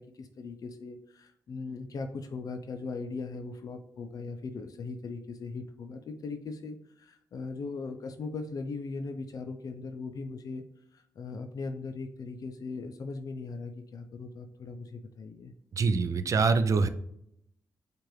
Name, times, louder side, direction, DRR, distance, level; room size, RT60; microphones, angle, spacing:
voice 1, 0.0-10.6 10.9-15.5, left 4 dB, 55° left, 6 dB, 0.4 m, -39 dB
voice 2, 15.8-16.9, right 4 dB, 45° right, 10 dB, 0.4 m, -24 dB
4.7 x 2.5 x 3.0 m, 0.74 s
cardioid pair, 85°, 7 cm